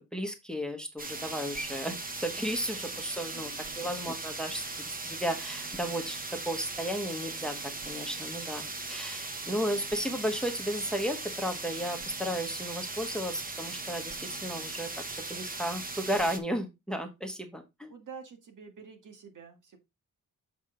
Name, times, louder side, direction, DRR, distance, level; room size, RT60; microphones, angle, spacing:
voice 1, 0.0-6.2 6.5-7.6 7.8-14.9 15.2-17.9, equal, ahead, 6 dB, 1.1 m, -34 dB
sound 1, 1.0-16.4, right 3 dB, 25° right, 1.0 m, -38 dB
voice 2, 17.9-19.8, right 6 dB, 70° right, 5 dB, 1.9 m, -48 dB
7.2 x 5.5 x 3.7 m, 0.23 s
wide cardioid pair, 160°, 32 cm